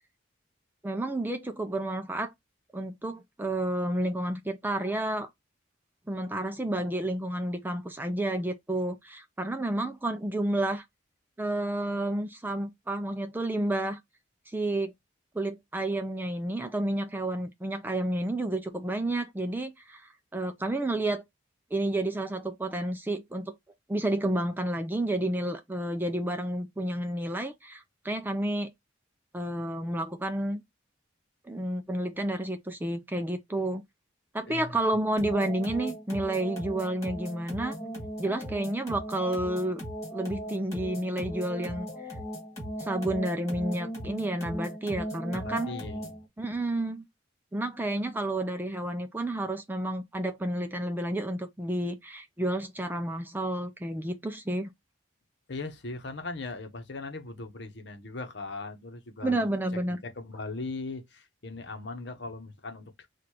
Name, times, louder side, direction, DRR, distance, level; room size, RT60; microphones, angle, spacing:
voice 1, 0.8-2.3 2.7-5.3 6.1-10.8 11.4-14.0 14.5-14.9 15.3-21.2 21.7-23.5 23.9-28.7 29.3-30.6 31.4-33.8 34.3-37.7 38.2-39.8 40.1-41.9 42.8-45.7 46.4-47.1 47.5-54.7 59.2-60.0, right 1 dB, 10° right, 0.4 m, -30 dB
voice 2, 34.4-34.8 45.3-46.2 55.5-59.4 60.0-63.1, left 3 dB, 55° left, 0.9 m, -39 dB
sound 1, 35.2-46.3, equal, 15° left, 2.0 m, -38 dB
6.3 x 2.5 x 2.9 m
head